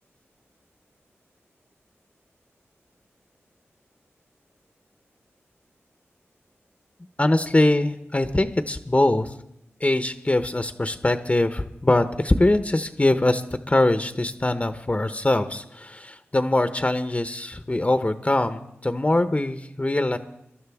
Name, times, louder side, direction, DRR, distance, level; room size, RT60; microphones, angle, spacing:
voice 1, 7.2-9.3 9.8-20.2, left 2 dB, 25° left, 9 dB, 0.8 m, -22 dB
21.5 x 12.0 x 3.5 m, 0.80 s
cardioid pair, 45°, 5 cm